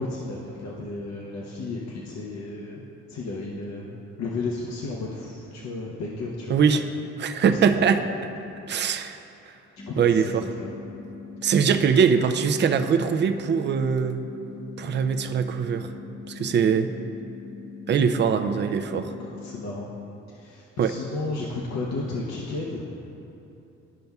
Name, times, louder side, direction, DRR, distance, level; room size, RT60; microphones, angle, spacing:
voice 1, 0.0-6.6 7.5-8.0 9.9-10.7 16.4-16.6 19.2-19.9 20.3-23.0, left 3 dB, 60° left, -3 dB, 0.8 m, -33 dB
voice 2, 6.5-6.8 7.2-8.0 8.7-9.2 10.0-10.4 11.4-14.2 14.8-15.9 16.3-16.9 17.9-19.1 20.8-20.9, right 6 dB, 35° right, 7 dB, 0.4 m, -22 dB
sound 1, 9.8-19.8, left 5 dB, 20° left, 0.5 m, -42 dB
12.0 x 5.2 x 2.3 m, 2.9 s
cardioid pair, 90°, 30 cm